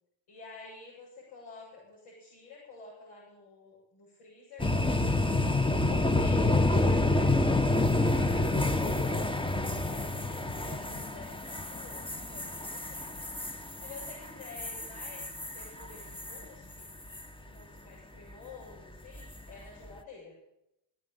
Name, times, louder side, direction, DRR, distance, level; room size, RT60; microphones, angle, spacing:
voice 1, 0.3-9.3 9.9-12.0 12.3-13.2 13.8-15.3 15.5-16.9 17.4-20.3, left 3 dB, 75° left, -5 dB, 7.4 m, -50 dB
sound 1, 4.6-16.4 16.8-17.2 19.1-19.5, left 2 dB, 10° left, 1.4 m, -28 dB
17.0 x 9.4 x 8.4 m, 0.86 s
supercardioid pair, 65°, 47 cm